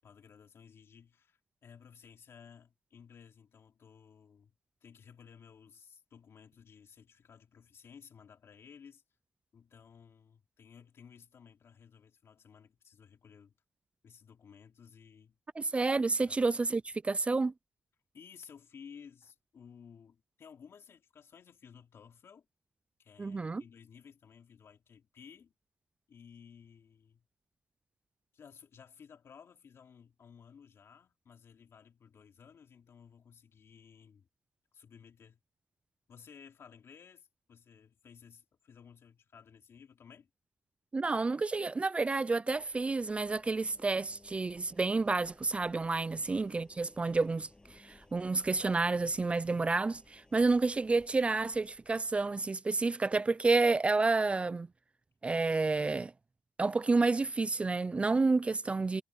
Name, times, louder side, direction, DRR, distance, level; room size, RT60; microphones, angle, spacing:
voice 1, 0.0-4.5 4.8-9.0 9.5-13.5 14.0-15.4 16.3-16.4 18.1-22.5 23.0-25.5 26.1-27.2 28.3-34.3 34.7-35.4 36.1-40.3 46.2-46.4, left 7 dB, 65° left, 2.9 m, -56 dB
voice 2, 15.6-17.5 23.2-23.6 40.9-54.7 55.2-56.1 56.6-59.0, right 3 dB, 25° right, 0.4 m, -30 dB
Engine, 42.5-52.5, left 2 dB, 15° left, 7.5 m, -62 dB
wide cardioid pair, 125°, 5 cm